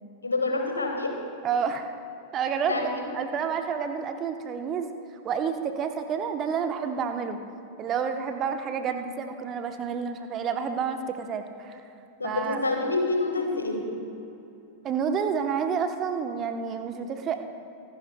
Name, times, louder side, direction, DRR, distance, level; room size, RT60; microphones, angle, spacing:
voice 1, 0.2-1.2 2.7-2.9 12.2-13.9, left 3 dB, 80° left, 3 dB, 1.6 m, -27 dB
voice 2, 1.4-1.9 2.3-2.7 3.1-4.9 5.2-7.4 7.8-11.8 12.2-12.6 14.8-17.4, right 6 dB, 30° right, 7 dB, 0.9 m, -29 dB
24.5 x 11.5 x 2.3 m, 2.8 s
figure-of-eight pair, 90°, 0 cm